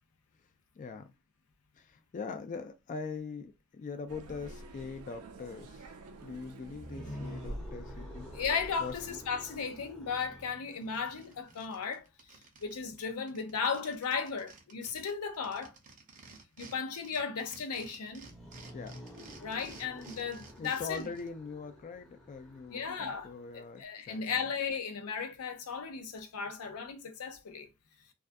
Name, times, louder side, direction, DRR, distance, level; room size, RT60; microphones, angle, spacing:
voice 1, 0.8-1.1 1.8-5.8 6.2-8.3 8.8-8.9 18.7-19.0 20.6-24.5, left 4 dB, 35° left, 0.3 m, -42 dB
sound 1, 4.1-9.8, right 1 dB, 80° right, 0.4 m, -47 dB
sound 2, 6.7-11.8 18.1-23.8, left 1 dB, 5° left, 0.6 m, -50 dB
voice 2, 8.3-12.0 12.6-15.7 16.6-18.3 19.4-21.1 22.7-27.7, left 5 dB, 90° left, 0.5 m, -36 dB
sound 3, 10.4-10.5 10.8-12.7 13.0-13.1 13.3-16.8 17.0-21.3, right 4 dB, 35° right, 0.6 m, -53 dB
2.3 x 2.2 x 2.5 m
head